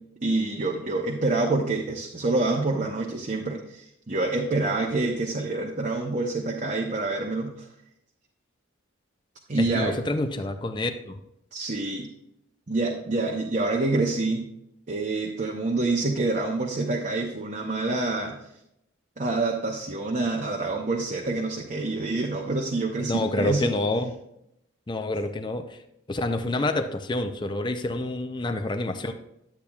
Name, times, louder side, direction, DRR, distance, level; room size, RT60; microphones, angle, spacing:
voice 1, 0.2-7.7 9.5-9.9 11.5-12.1 12.7-14.5 14.9-18.4 19.2-23.7, right 2 dB, 40° right, 0 dB, 0.7 m, -27 dB
voice 2, 9.5-11.2 23.0-24.1 24.9-25.8 26.1-29.1, left 2 dB, 25° left, 6 dB, 0.5 m, -28 dB
10.5 x 8.3 x 2.4 m, 0.79 s
head